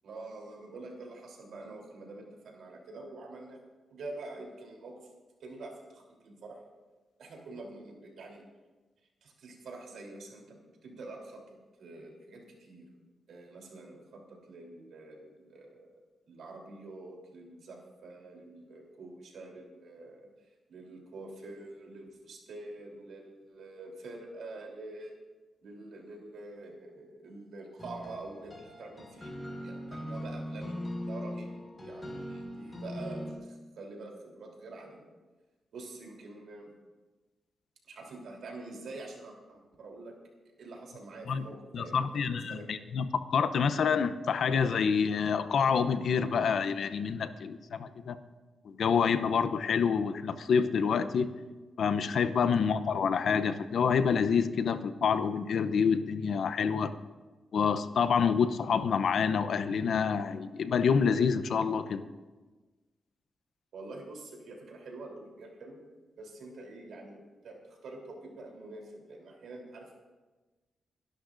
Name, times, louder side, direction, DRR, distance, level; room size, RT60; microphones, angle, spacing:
voice 1, 0.0-3.6 3.9-4.9 5.4-6.6 7.2-8.4 9.2-12.9 13.3-16.0 16.3-20.3 20.7-25.2 25.6-31.5 31.8-35.1 35.7-36.7 37.8-40.1 40.6-42.7 52.4-52.7 63.7-65.8 66.1-70.0, right 2 dB, 80° right, 0 dB, 3.5 m, -46 dB
sound 1, 27.8-33.3, equal, 20° left, 4.9 m, -40 dB
voice 2, 41.7-48.2 48.7-51.3 51.8-57.0 57.5-62.0, left 6 dB, 75° left, 11 dB, 0.7 m, -27 dB
29.5 x 11.5 x 2.6 m, 1.2 s
cardioid pair, 75°, 0 cm